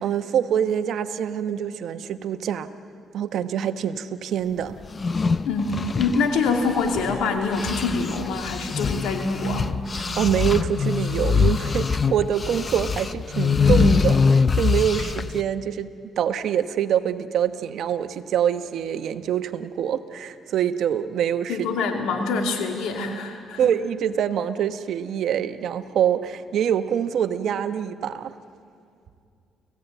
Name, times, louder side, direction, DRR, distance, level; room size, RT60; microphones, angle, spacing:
voice 1, 0.0-2.7 3.1-4.8 10.0-15.9 16.2-21.7 23.6-28.3, right 9 dB, 70° right, 10 dB, 1.0 m, -25 dB
sound 1, 4.8-7.2 7.5-15.4, left 5 dB, 35° left, 0.6 m, -23 dB
voice 2, 5.5-9.7 21.5-23.7, left 4 dB, 90° left, 3 dB, 2.6 m, -25 dB
29.5 x 16.0 x 9.2 m, 2.4 s
cardioid pair, 90°, 0 cm